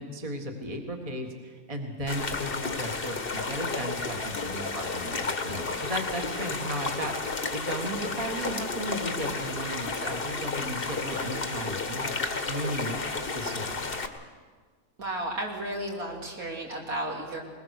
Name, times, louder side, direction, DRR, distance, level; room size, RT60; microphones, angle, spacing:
voice 1, 0.0-13.0 13.3-13.8, right 1 dB, 25° right, 3 dB, 1.8 m, -35 dB
sound 1, 2.1-14.1, left 4 dB, 40° left, 1.5 m, -32 dB
voice 2, 15.0-17.4, right 1 dB, 70° right, -1 dB, 3.5 m, -33 dB
21.0 x 21.0 x 6.7 m, 1.5 s
omnidirectional pair, 1.6 m